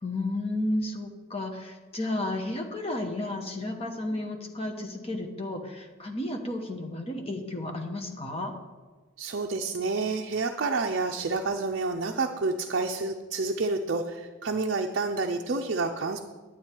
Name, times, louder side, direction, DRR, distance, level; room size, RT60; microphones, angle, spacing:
voice 1, 0.0-8.5, left 1 dB, 25° left, 3 dB, 1.0 m, -32 dB
voice 2, 9.2-16.2, right 3 dB, 55° right, 3 dB, 0.5 m, -29 dB
10.5 x 8.8 x 4.5 m, 1.3 s
head